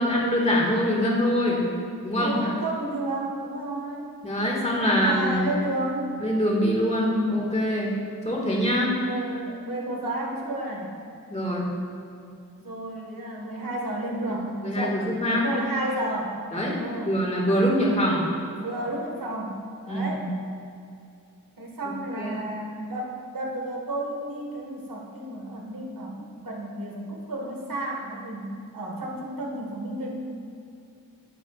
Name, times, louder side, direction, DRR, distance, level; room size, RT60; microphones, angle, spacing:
voice 1, 0.0-1.7 2.0-2.4 4.2-5.4 6.2-8.0 8.2-9.0 11.3-11.7 14.2-15.5 16.5-18.2 19.9-20.3 22.2-22.3, equal, 20° left, -3 dB, 1.9 m, -24 dB
voice 2, 2.2-4.1 4.9-6.1 9.0-10.9 12.6-15.0 15.2-16.3 16.8-17.1 18.6-20.2 21.6-30.1, right 1 dB, 70° right, -1 dB, 1.7 m, -32 dB
10.5 x 8.2 x 2.5 m, 2.5 s
wide cardioid pair, 75°, 35 cm